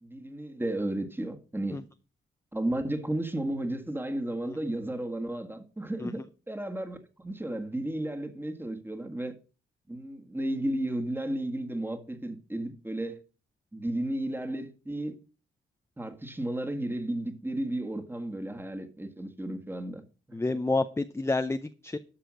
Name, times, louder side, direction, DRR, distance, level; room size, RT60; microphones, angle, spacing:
voice 1, 0.0-1.8 2.5-9.4 9.9-13.2 13.7-15.2 16.0-20.0 20.3-20.4, right 1 dB, 10° right, 1.7 m, -33 dB
voice 2, 20.3-22.0, left 2 dB, 10° left, 0.6 m, -29 dB
12.5 x 5.0 x 6.2 m
cardioid pair, 65°, 21 cm